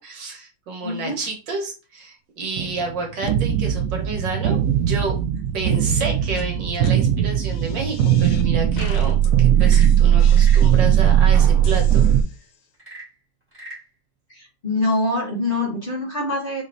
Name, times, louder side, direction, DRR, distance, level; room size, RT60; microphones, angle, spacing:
voice 1, 0.0-5.1 5.5-12.1, right 3 dB, 70° right, 0 dB, 1.8 m, -30 dB
voice 2, 0.8-1.2 14.3-16.6, left 2 dB, 30° left, -4 dB, 1.4 m, -24 dB
sound 1, 2.6-12.2, right 10 dB, 90° right, 0.7 m, -18 dB
sound 2, 5.9-6.1 6.4-6.5 6.8-6.9 7.4-8.5 8.8-9.3 9.7-11.1 11.6-12.6, left 8 dB, 85° left, 1.4 m, -41 dB
Frog / Percussion / Wood, 9.5-10.8 12.7-13.9, right 1 dB, 5° right, 1.7 m, -41 dB
5.1 x 3.1 x 2.6 m, 0.33 s
omnidirectional pair, 2.1 m